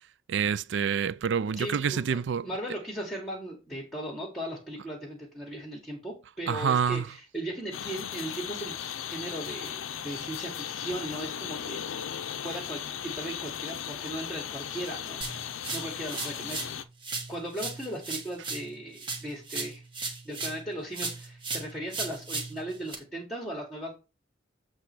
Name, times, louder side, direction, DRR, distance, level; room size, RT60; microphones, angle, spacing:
voice 1, 0.3-2.5 6.5-7.1, right 7 dB, 65° right, 0.4 m, -27 dB
voice 2, 1.5-15.2 15.7-16.8 17.3-19.8 20.2-23.9, right 1 dB, ahead, 1.6 m, -38 dB
sound 1, 7.7-16.8, left 9 dB, 90° left, 0.5 m, -37 dB
sound 2, 15.2-16.8 17.0-20.7 20.9-22.9, right 4 dB, 25° right, 1.3 m, -36 dB
8.0 x 3.1 x 6.0 m
head